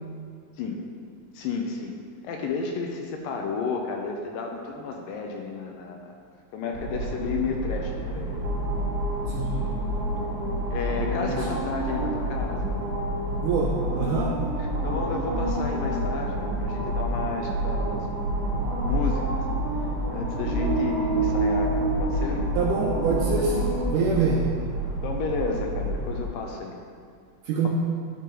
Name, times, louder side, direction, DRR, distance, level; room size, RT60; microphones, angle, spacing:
voice 1, 1.3-1.9 2.2-6.1 6.5-8.4 10.7-12.7 14.8-18.1 18.8-19.4 20.1-21.7 22.0-22.4 25.0-26.7, left 4 dB, 80° left, 2 dB, 2.2 m, -32 dB
sound 1, 6.7-26.2, right 1 dB, 60° right, 2.6 m, -28 dB
voice 2, 9.3-9.7 11.3-11.5 13.4-14.3 22.6-24.4 27.5-27.7, right 5 dB, 80° right, -2 dB, 1.9 m, -25 dB
11.0 x 5.3 x 3.0 m, 2.1 s
omnidirectional pair, 4.2 m